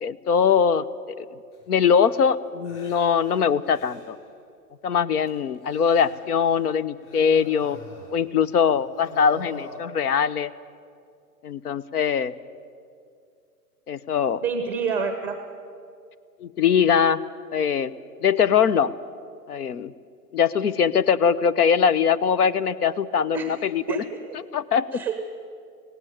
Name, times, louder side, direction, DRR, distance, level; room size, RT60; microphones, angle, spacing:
voice 1, 0.0-1.2 1.7-4.2 4.8-7.8 8.1-10.5 11.4-12.3 13.9-14.4 16.4-17.2 17.5-17.9 18.2-18.9 19.5-19.9 20.3-24.0 24.3-24.9, left 7 dB, 65° left, 17 dB, 0.9 m, -22 dB
sound 1, 1.5-1.6 2.1-2.2 2.6-4.3 5.3-6.7 7.0-8.6 8.8-9.8, left 1 dB, 45° left, 7.8 m, -44 dB
voice 2, 14.4-15.4 23.3-23.6 23.9-24.0 24.9-25.3, right 6 dB, 5° right, 7 dB, 0.7 m, -27 dB
17.0 x 17.0 x 10.0 m, 2.3 s
hypercardioid pair, 155°, 48 cm